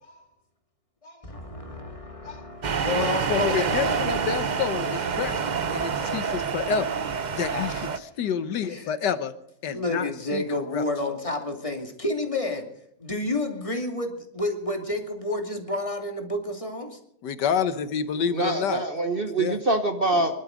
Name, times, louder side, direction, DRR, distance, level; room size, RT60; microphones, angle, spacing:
voice 1, 1.0-4.0 7.5-7.7 8.6-8.9 9.6-12.7 13.0-17.0, left 2 dB, 20° left, 3 dB, 2.4 m, -30 dB
sound 1, 2.6-8.0, right 6 dB, 55° right, 0.5 m, -27 dB
voice 2, 3.3-7.0 7.4-7.8 8.2-9.3 9.6-10.8 17.2-18.9 19.4-19.6, left 7 dB, 75° left, 12 dB, 1.6 m, -28 dB
voice 3, 18.3-20.4, right 2 dB, 35° right, 6 dB, 1.2 m, -25 dB
23.5 x 12.0 x 5.1 m, 0.74 s
omnidirectional pair, 1.9 m